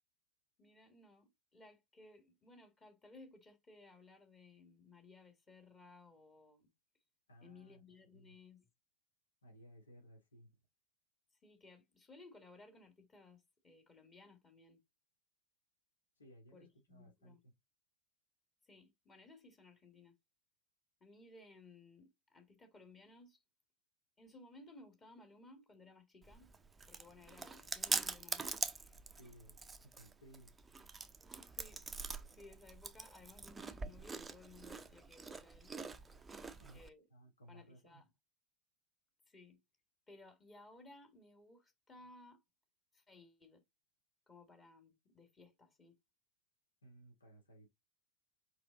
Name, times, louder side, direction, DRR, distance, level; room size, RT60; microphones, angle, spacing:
voice 1, 0.6-6.7 7.4-8.7 11.4-14.8 16.5-17.4 18.6-20.2 21.0-23.4 24.2-26.5 26.9-28.9 31.5-31.8 32.3-35.7 36.5-37.0 37.5-38.1 39.3-39.6 40.1-42.4 42.9-43.6 44.3-46.0, left 2 dB, 20° left, 2.0 m, -60 dB
voice 2, 7.3-7.8 8.1-8.4 9.4-10.5 16.2-17.5 29.2-29.6 29.8-30.5 36.5-36.8 37.1-38.0 46.8-47.7, right 1 dB, 75° left, 2.6 m, -60 dB
Chewing mastication, 26.2-36.9, right 4 dB, 10° right, 0.7 m, -44 dB
5.9 x 5.0 x 3.9 m
figure-of-eight pair, 90°, 0 cm